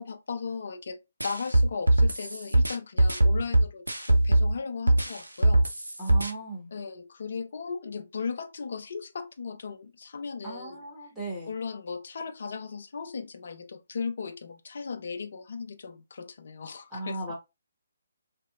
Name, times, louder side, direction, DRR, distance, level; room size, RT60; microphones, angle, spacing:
voice 1, 0.0-5.7 6.7-10.7 11.5-17.2, left 5 dB, 50° left, 0.4 m, -37 dB
sound 1, 1.2-4.5 4.9-6.3, right 1 dB, 80° right, 0.5 m, -21 dB
voice 2, 6.0-6.7 10.4-11.5 16.9-17.3, right 2 dB, 5° right, 1.0 m, -36 dB
2.9 x 2.0 x 2.3 m
figure-of-eight pair, 140°, 0 cm